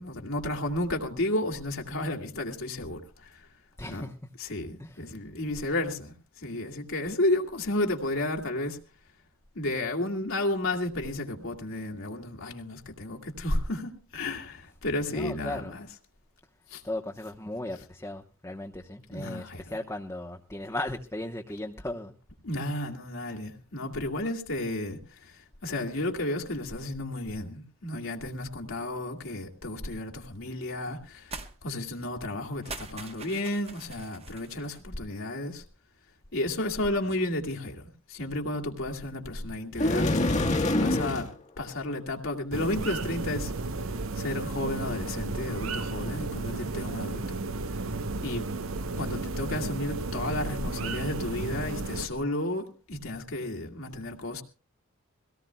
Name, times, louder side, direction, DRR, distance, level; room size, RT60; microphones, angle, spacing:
voice 1, 0.0-3.5 3.9-4.1 4.4-8.8 9.6-15.9 16.7-16.8 19.1-19.8 22.4-31.3 31.6-35.6 36.3-40.1 40.7-41.3 41.6-43.5 44.2-47.4 48.2-48.5 49.0-54.4, left 1 dB, 70° left, 2.2 m, -32 dB
voice 2, 3.8-4.1 4.8-5.0 15.1-15.7 16.8-22.1, left 1 dB, 15° left, 0.9 m, -36 dB
sound 1, 31.3-31.5 31.8-32.0 32.5-34.8, right 4 dB, 30° right, 1.2 m, -43 dB
sound 2, 39.8-41.3, left 1 dB, 35° left, 1.4 m, -25 dB
sound 3, 42.5-52.1, right 3 dB, 70° right, 0.8 m, -33 dB
23.0 x 17.5 x 2.3 m
head